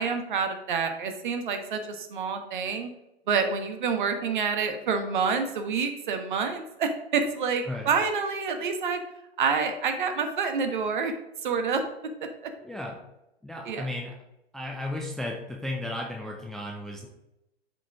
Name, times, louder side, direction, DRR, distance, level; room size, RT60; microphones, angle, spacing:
voice 1, 0.0-2.9 3.3-9.0 9.4-11.1 11.4-11.8 13.7-13.9, right 5 dB, 50° right, 6 dB, 1.4 m, -27 dB
voice 2, 12.6-13.0 13.4-14.1 14.5-17.1, left 1 dB, ahead, 0 dB, 0.4 m, -34 dB
12.0 x 5.0 x 3.5 m, 0.91 s
figure-of-eight pair, 110°, 32 cm